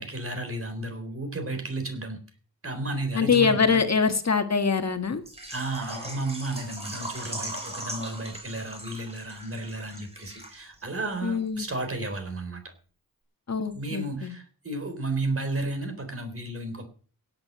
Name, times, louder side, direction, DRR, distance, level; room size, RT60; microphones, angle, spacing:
voice 1, 0.0-2.2 2.6-3.9 5.5-12.6 13.7-16.9, right 2 dB, 35° right, 7 dB, 3.9 m, -33 dB
voice 2, 3.1-5.2 11.2-11.7 13.5-14.3, left 5 dB, 45° left, 7 dB, 1.6 m, -24 dB
Water / Liquid, 5.3-10.9 11.1-11.2 11.7-11.8, right 1 dB, 15° right, 6.7 m, -39 dB
17.0 x 8.9 x 7.5 m, 0.42 s
wide cardioid pair, 160°, 37 cm